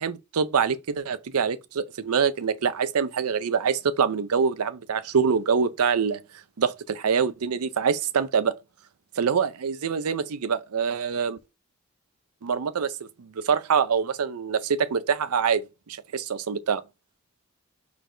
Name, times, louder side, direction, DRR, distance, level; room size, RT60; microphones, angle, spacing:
voice 1, 0.0-6.2 6.6-8.5 9.2-11.4 12.4-12.9 13.2-16.8, right 6 dB, 90° right, 0.6 m, -25 dB
4.6 x 4.1 x 2.6 m
head